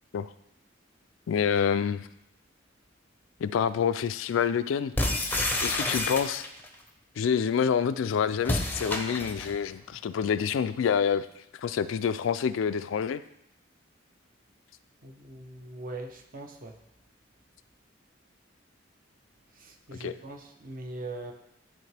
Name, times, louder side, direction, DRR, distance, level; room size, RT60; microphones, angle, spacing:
voice 1, 1.3-2.1 3.4-4.9 5.6-6.4 7.2-11.3 11.5-13.2 20.0-20.1, left 7 dB, 80° left, 13 dB, 0.3 m, -27 dB
sound 1, 5.0-6.7 8.4-9.6, left 2 dB, 10° left, 0.6 m, -29 dB
voice 2, 15.0-16.8 19.5-21.3, right 2 dB, 45° right, 3 dB, 0.8 m, -41 dB
11.0 x 3.6 x 3.3 m, 0.81 s
head